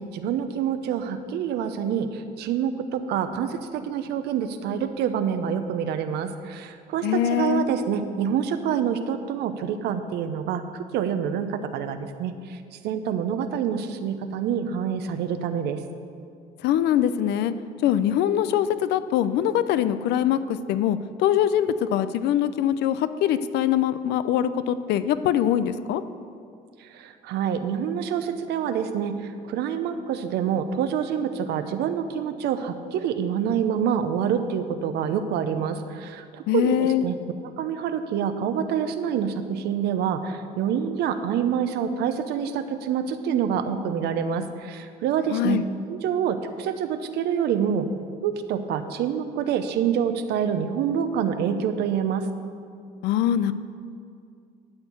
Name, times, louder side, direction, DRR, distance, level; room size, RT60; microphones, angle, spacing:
voice 1, 0.0-12.6 12.8-15.8 26.9-29.1 29.4-37.2 37.4-45.6 45.9-47.9 48.2-52.2, right 8 dB, 80° right, 9 dB, 0.8 m, -27 dB
voice 2, 7.0-7.6 16.6-17.5 17.8-26.0 36.5-37.0 45.3-45.7 53.0-53.5, left 10 dB, 80° left, 13 dB, 0.5 m, -23 dB
12.5 x 4.5 x 8.3 m, 2.3 s
cardioid pair, 110°, 17 cm